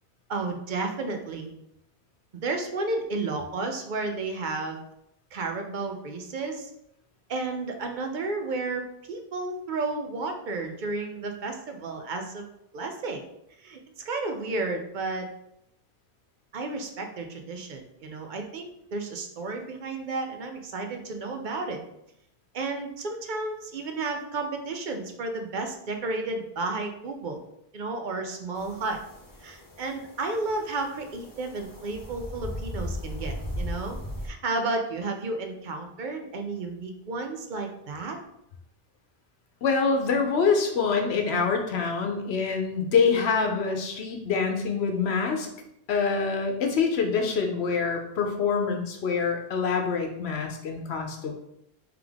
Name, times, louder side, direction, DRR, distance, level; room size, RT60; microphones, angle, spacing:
voice 1, 0.3-1.5 2.4-4.8 5.3-6.7 7.3-8.8 9.1-12.5 12.7-13.2 13.6-15.3 16.5-21.8 22.5-27.4 27.7-29.0 29.4-34.0 34.2-38.2, right 3 dB, 55° right, 4 dB, 0.7 m, -32 dB
sound 1, 28.6-34.3, equal, 25° left, 0.5 m, -37 dB
voice 2, 39.6-45.5 45.9-51.3, left 5 dB, 85° left, 3 dB, 1.0 m, -25 dB
3.4 x 3.4 x 3.5 m, 0.78 s
omnidirectional pair, 1.1 m